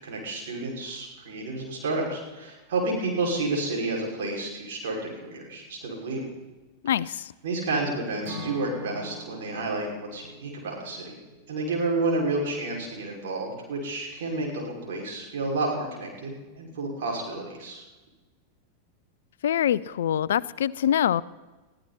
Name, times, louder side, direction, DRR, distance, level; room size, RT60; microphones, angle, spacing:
voice 1, 0.0-6.2 7.4-11.2 11.5-17.8, right 2 dB, 55° right, -1 dB, 5.8 m, -30 dB
voice 2, 6.8-7.2 19.4-21.2, left 10 dB, 60° left, 20 dB, 0.4 m, -24 dB
Acoustic guitar / Strum, 8.2-12.3, right 1 dB, 35° right, 4.1 m, -43 dB
22.0 x 15.0 x 4.3 m, 1.2 s
figure-of-eight pair, 90°, 0 cm